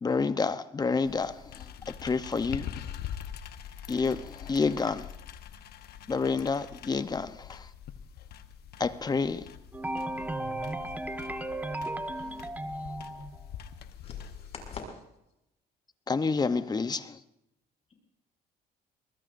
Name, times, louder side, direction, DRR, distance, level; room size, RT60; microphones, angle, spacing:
voice 1, 0.0-2.7 3.9-5.1 6.1-7.7 8.8-9.5 16.1-17.2, left 4 dB, 25° left, 0.8 m, -29 dB
sound 1, 1.0-14.8, left 9 dB, 70° left, 1.0 m, -44 dB
voice 2, 9.7-13.6, right 1 dB, 10° right, 1.4 m, -35 dB
voice 3, 14.0-15.0, left 3 dB, 40° left, 6.3 m, -44 dB
23.0 x 20.0 x 2.6 m
cardioid pair, 110°, 17 cm